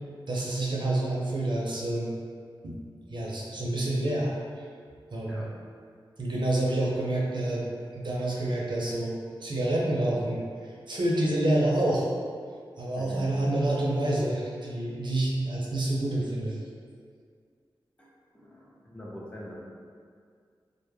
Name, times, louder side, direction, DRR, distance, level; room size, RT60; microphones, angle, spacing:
voice 1, 0.3-2.1 2.6-2.8 3.1-4.3 4.6-4.7 5.1-5.4 6.2-7.6 7.9-9.1 9.4-12.1 12.8-16.6, right 1 dB, 60° right, -4 dB, 0.5 m, -28 dB
voice 2, 13.0-13.3 18.0-19.5, left 1 dB, 15° left, -5 dB, 0.5 m, -44 dB
2.2 x 2.0 x 3.1 m, 2.1 s
wide cardioid pair, 70°, 9 cm